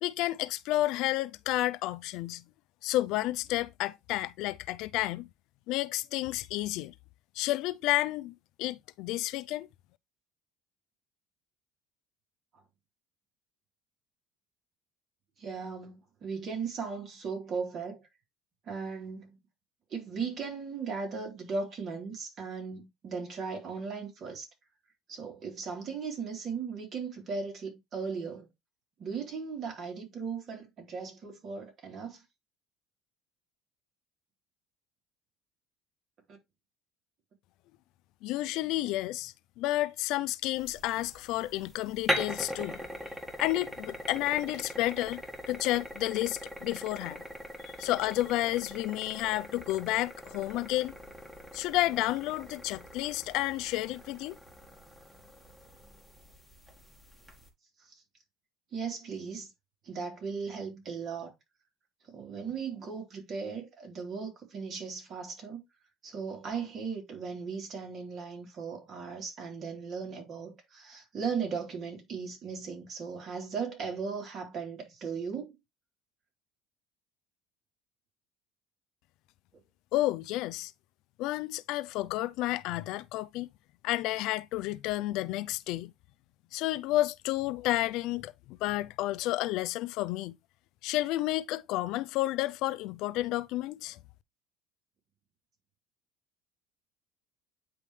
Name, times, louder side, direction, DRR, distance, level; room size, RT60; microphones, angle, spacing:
voice 1, 0.0-2.4 2.8-5.3 5.7-6.9 7.4-9.7 38.2-42.8 43.4-45.2 45.5-47.2 47.6-50.9 51.5-54.4 79.9-80.7 81.2-83.5 83.8-85.9 86.5-90.4 90.8-94.0, left 16 dB, 70° left, 0.4 m, -31 dB
voice 2, 15.4-18.0 18.6-19.4 19.9-24.5 25.1-28.5 29.0-32.2 58.7-59.5 59.8-61.3 62.1-65.6 66.0-75.6, right 5 dB, 45° right, 3.4 m, -37 dB
sound 1, 40.6-57.5, equal, 5° right, 1.9 m, -41 dB
9.4 x 3.5 x 3.2 m
supercardioid pair, 105°, 0 cm